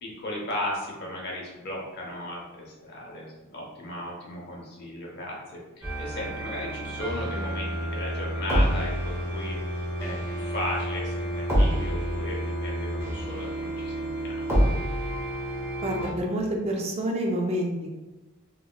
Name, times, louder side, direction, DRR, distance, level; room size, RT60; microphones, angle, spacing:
voice 1, 0.0-14.5, left 1 dB, 50° left, -2 dB, 0.8 m, -36 dB
sound 1, 5.8-16.1, equal, 15° right, 0.8 m, -28 dB
voice 2, 15.8-17.9, right 1 dB, 30° right, 0 dB, 0.4 m, -28 dB
2.9 x 2.8 x 2.2 m, 1.1 s
head